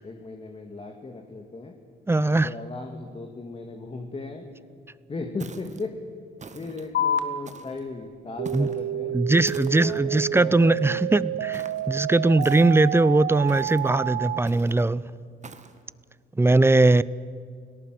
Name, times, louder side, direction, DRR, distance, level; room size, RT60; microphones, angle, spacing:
voice 1, 0.0-1.7 2.3-4.5 5.1-5.9 6.5-9.2 9.7-11.8, left 3 dB, 30° left, 2.1 m, -37 dB
voice 2, 2.1-2.5 8.5-8.7 9.1-15.1 16.4-17.0, right 2 dB, 10° right, 0.6 m, -20 dB
sound 1, 5.4-5.9 6.4-6.9 7.4-7.9 8.4-8.8 9.5-10.0 11.5-11.9 12.4-12.9 13.5-13.9 14.4-14.8 15.4-15.8, right 4 dB, 35° right, 1.7 m, -43 dB
sound 2, 6.9-13.9, left 6 dB, 65° left, 1.9 m, -35 dB
sound 3, 8.4-14.4, right 13 dB, 85° right, 0.6 m, -30 dB
29.5 x 18.0 x 7.7 m
cardioid pair, 90°, 20 cm